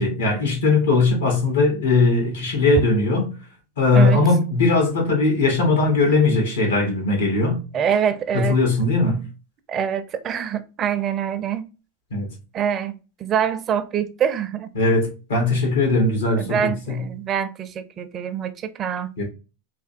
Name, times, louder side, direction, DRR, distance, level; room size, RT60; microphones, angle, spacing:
voice 1, 0.0-3.3 3.8-7.6 8.3-9.3 12.1-12.3 14.7-17.1 19.2-19.3, left 3 dB, 90° left, 1.4 m, -19 dB
voice 2, 7.7-8.6 9.7-11.7 12.5-14.7 16.4-19.1, right 8 dB, 35° right, 0.4 m, -25 dB
3.3 x 2.2 x 2.6 m
hypercardioid pair, 115°, 0 cm